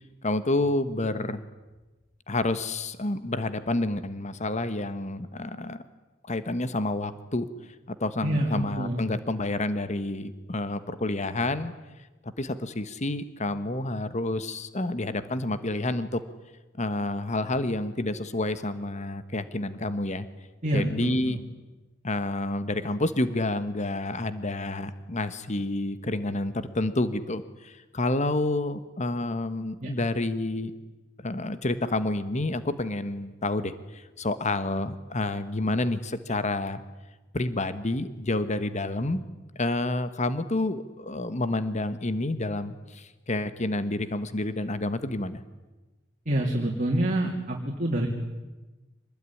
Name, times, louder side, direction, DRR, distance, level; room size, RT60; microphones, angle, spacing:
voice 1, 0.2-1.4 2.3-5.8 6.3-7.5 8.0-11.7 12.4-16.2 16.8-20.3 20.7-21.4 22.0-30.7 31.2-36.8 37.3-39.2 39.5-45.4, left 2 dB, 35° left, 12 dB, 1.3 m, -29 dB
voice 2, 8.2-9.0 20.6-21.4 29.8-29.9 46.3-48.1, right 1 dB, 40° right, -1 dB, 3.2 m, -27 dB
25.5 x 20.0 x 9.9 m, 1.2 s
head